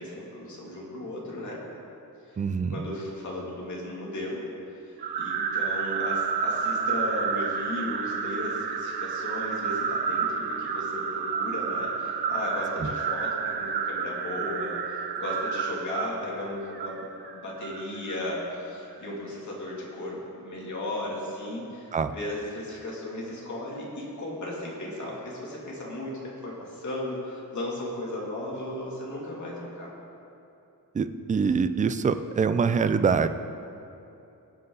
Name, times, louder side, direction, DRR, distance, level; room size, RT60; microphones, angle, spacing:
voice 1, 0.0-1.6 2.7-4.4 4.7-17.0 17.3-29.9, left 1 dB, 50° left, -4 dB, 2.9 m, -35 dB
voice 2, 2.4-2.8 12.8-12.9 21.9-22.1 30.9-33.3, right 5 dB, 20° right, 11 dB, 0.3 m, -24 dB
sound 1, 5.0-18.4, right 6 dB, 85° right, 0.9 m, -30 dB
20.0 x 7.8 x 4.0 m, 2.9 s
wide cardioid pair, 180°, 38 cm